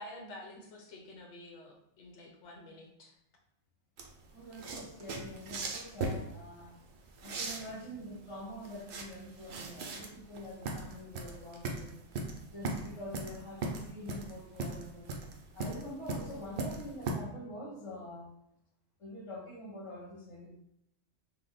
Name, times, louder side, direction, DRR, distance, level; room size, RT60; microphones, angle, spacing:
voice 1, 0.0-3.1, left 1 dB, 80° left, 0 dB, 1.0 m, -49 dB
sound 1, 4.0-17.1, right 3 dB, 70° right, 0.8 m, -39 dB
voice 2, 4.3-6.7 7.2-11.9 12.5-15.1 15.5-18.3 19.0-20.5, left 1 dB, 30° left, -3 dB, 0.8 m, -45 dB
2.8 x 2.1 x 3.9 m, 0.77 s
omnidirectional pair, 1.2 m